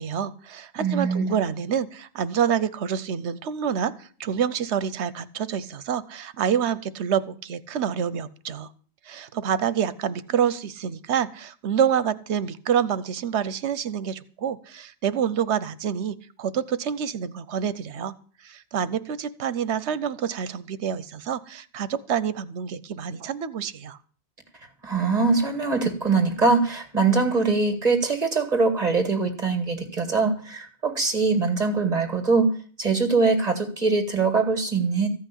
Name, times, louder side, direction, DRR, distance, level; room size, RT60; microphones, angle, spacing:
voice 1, 0.0-8.7 9.1-18.1 18.4-24.0, right 8 dB, 85° right, 15 dB, 1.1 m, -27 dB
voice 2, 0.8-1.3 24.8-32.5 32.8-35.1, right 4 dB, 35° right, 7 dB, 2.2 m, -22 dB
14.5 x 5.8 x 9.9 m, 0.42 s
omnidirectional pair, 1.1 m